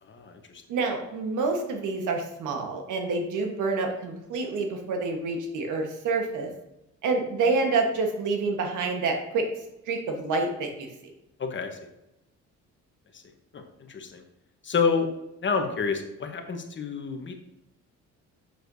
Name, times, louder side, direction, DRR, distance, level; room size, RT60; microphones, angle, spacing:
voice 1, 0.0-0.6 11.4-11.8 13.1-13.2 13.5-13.6 13.9-14.2 14.6-15.1 15.4-17.3, left 5 dB, 40° left, 4 dB, 1.0 m, -28 dB
voice 2, 0.7-6.5 7.0-9.5 9.9-11.1, right 3 dB, 80° right, 3 dB, 1.3 m, -28 dB
6.5 x 6.4 x 2.7 m, 0.89 s
cardioid pair, 90°, 30 cm